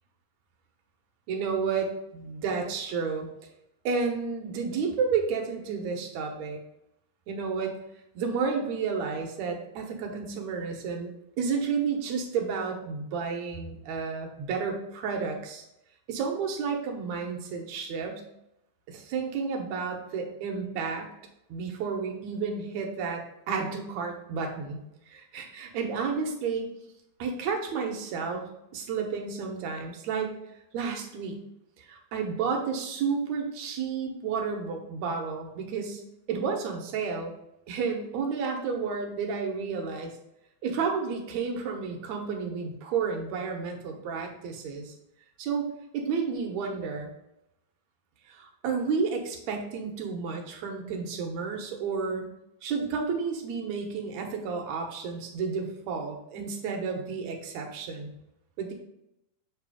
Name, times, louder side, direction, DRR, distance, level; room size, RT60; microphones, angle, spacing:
voice 1, 1.3-3.3 3.8-6.6 7.3-7.7 8.2-11.1 11.4-15.6 16.1-18.2 18.9-21.1 21.5-24.8 25.1-26.7 27.2-28.4 28.7-30.4 30.7-31.4 31.8-36.0 36.3-37.3 37.7-40.1 40.6-44.9 45.4-45.7 45.9-47.1 48.3-52.3 52.6-58.1 58.6-58.7, right 5 dB, 75° right, 2 dB, 2.2 m, -31 dB
7.6 x 3.0 x 4.8 m, 0.84 s
omnidirectional pair, 3.3 m